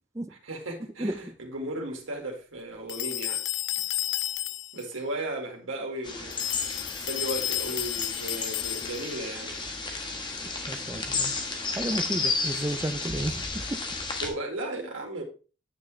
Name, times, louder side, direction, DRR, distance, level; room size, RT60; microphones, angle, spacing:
voice 1, 0.3-3.4 4.7-6.4 7.0-9.6 13.1-13.3 14.2-15.2, right 1 dB, 85° right, 2.2 m, -35 dB
sound 1, 2.9-4.9 6.3-9.2, left 14 dB, 75° left, 0.4 m, -32 dB
sound 2, 6.0-14.3, left 4 dB, 25° left, 1.3 m, -32 dB
voice 2, 10.7-11.3 11.8-13.4 13.7-13.8, right 1 dB, 15° right, 0.5 m, -32 dB
9.7 x 6.2 x 3.3 m
head